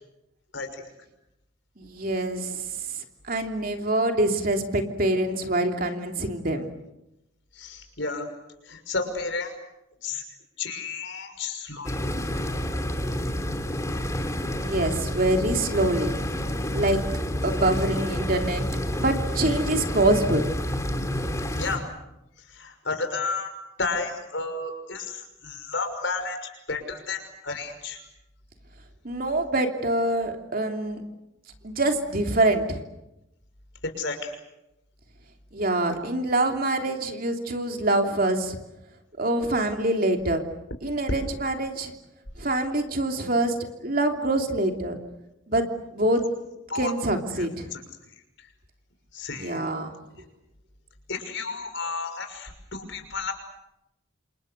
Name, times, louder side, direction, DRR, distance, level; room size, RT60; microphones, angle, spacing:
voice 1, 1.8-2.6 3.3-6.7 14.6-16.1 16.7-17.0 17.4-18.6 18.9-20.4 29.0-31.0 31.6-32.8 35.5-38.6 39.2-40.4 40.8-41.9 42.4-43.5 43.8-45.0 45.5-45.6 45.9-46.2 46.7-47.7 49.3-49.9, right 1 dB, 45° right, 4 dB, 3.1 m, -25 dB
voice 2, 7.6-8.3 8.7-9.5 10.0-10.2 10.6-12.0 21.5-21.8 22.6-23.5 23.8-26.4 26.7-28.0 34.0-34.4 46.7-46.9 47.4-47.5 47.7-47.8 49.1-49.6 51.1-53.3, left 4 dB, 60° left, 6 dB, 6.0 m, -32 dB
sound 1, 11.8-21.8, equal, 15° left, 2.9 m, -29 dB
29.0 x 27.5 x 6.7 m, 0.89 s
head